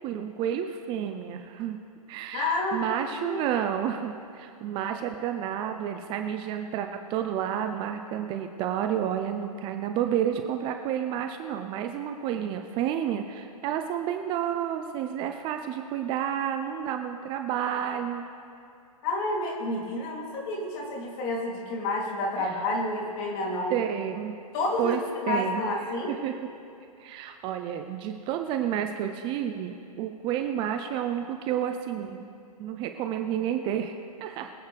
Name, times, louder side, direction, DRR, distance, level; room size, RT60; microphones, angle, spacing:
voice 1, 0.0-1.8 2.1-18.2 22.4-22.6 23.7-24.3 24.8-25.0 25.3-26.4 27.0-32.3 32.6-34.5, right 9 dB, 25° right, 6 dB, 0.7 m, -30 dB
voice 2, 2.3-3.4 19.0-23.8 24.5-25.0 25.2-26.1, left 2 dB, 35° left, -2 dB, 3.3 m, -29 dB
24.0 x 8.9 x 3.5 m, 2.5 s
hypercardioid pair, 130°, 19 cm